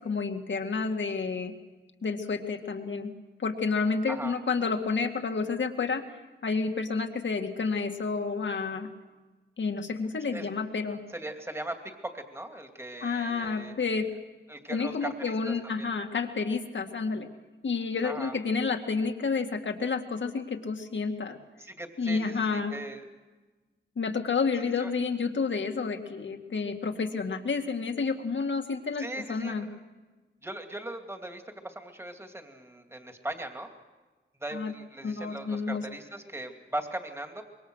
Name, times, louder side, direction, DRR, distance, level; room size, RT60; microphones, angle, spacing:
voice 1, 0.0-1.5 2.0-3.1 3.4-6.0 6.4-8.9 9.6-11.0 13.0-14.1 14.7-17.3 17.6-21.4 22.0-22.7 24.0-29.7 34.5-34.7 35.0-35.8, left 4 dB, 70° left, 5 dB, 2.1 m, -30 dB
voice 2, 11.1-13.8 14.5-15.9 18.0-18.3 21.6-23.1 24.6-24.9 29.0-29.8 30.4-33.7 34.4-37.4, right 1 dB, 15° right, 4 dB, 2.7 m, -39 dB
25.5 x 23.0 x 6.4 m, 1.3 s
wide cardioid pair, 110°, 20 cm